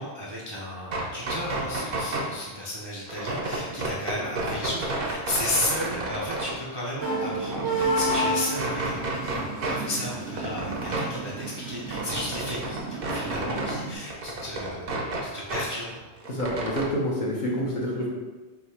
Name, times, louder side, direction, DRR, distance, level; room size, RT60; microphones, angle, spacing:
voice 1, 0.0-12.8 13.1-16.0, left 1 dB, 30° right, -7 dB, 0.5 m, -34 dB
sound 1, 0.8-2.4 3.1-6.6 7.0-8.3 8.6-9.8 10.1-13.8 14.0-15.7 16.0-16.9, right 2 dB, 60° right, 0.9 m, -31 dB
sound 2, 7.0-14.0, right 1 dB, 85° right, 1.1 m, -31 dB
voice 2, 16.3-18.1, equal, 50° left, -3 dB, 0.9 m, -27 dB
3.5 x 2.8 x 4.3 m, 1.3 s
omnidirectional pair, 1.1 m